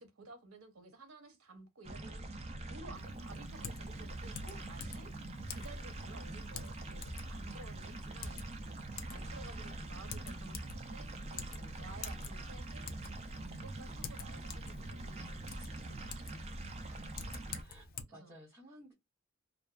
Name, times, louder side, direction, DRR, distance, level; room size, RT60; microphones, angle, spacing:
voice 1, 0.0-2.3 2.6-5.1 5.5-8.4 9.1-12.9 13.3-16.5 18.1-18.3, right 3 dB, 75° right, 0.8 m, -54 dB
sound 1, 1.8-17.6, right 2 dB, 30° right, 0.4 m, -44 dB
Typing, 2.9-18.0, left 5 dB, 45° left, 0.4 m, -49 dB
voice 2, 4.9-5.2 9.1-10.5 16.7-18.9, equal, 15° right, 1.0 m, -57 dB
2.5 x 2.2 x 2.3 m
head